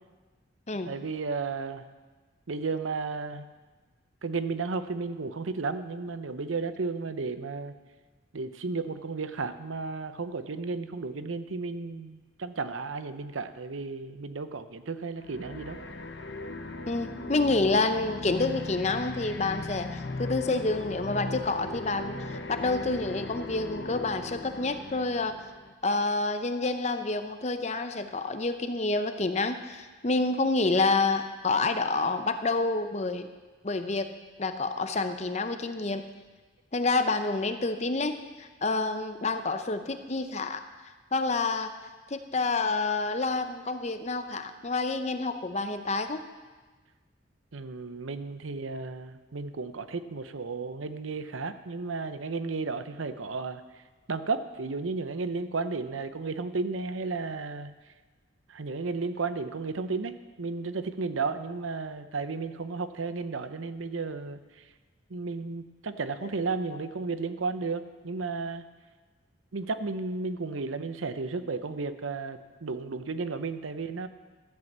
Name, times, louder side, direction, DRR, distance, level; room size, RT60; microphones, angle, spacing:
voice 1, 0.9-1.8 2.5-3.5 4.2-7.7 8.3-15.8 47.5-53.6 54.1-57.7 58.5-64.4 65.1-68.7 69.5-74.1, right 4 dB, 90° right, 11 dB, 0.7 m, -33 dB
sound 1, 15.2-25.7, left 2 dB, 65° left, 0.8 m, -38 dB
voice 2, 16.9-25.4 25.8-33.3 33.6-34.1 34.4-36.0 36.7-40.6 41.1-41.7 42.1-46.2 66.2-66.3, left 3 dB, 35° left, 9 dB, 0.7 m, -28 dB
13.0 x 8.0 x 7.4 m, 1.3 s
head